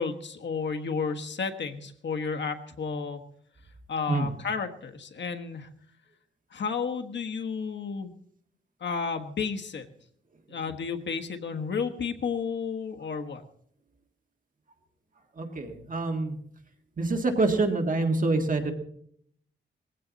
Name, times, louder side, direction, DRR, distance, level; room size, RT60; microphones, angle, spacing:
voice 1, 0.0-3.2 3.9-5.7 6.5-8.1 8.8-9.9 10.5-13.4, left 5 dB, 70° left, 5 dB, 1.4 m, -32 dB
voice 2, 15.4-16.4 17.0-18.7, right 3 dB, 45° right, 4 dB, 1.9 m, -26 dB
20.5 x 16.0 x 4.1 m, 0.65 s
wide cardioid pair, 155°, 19 cm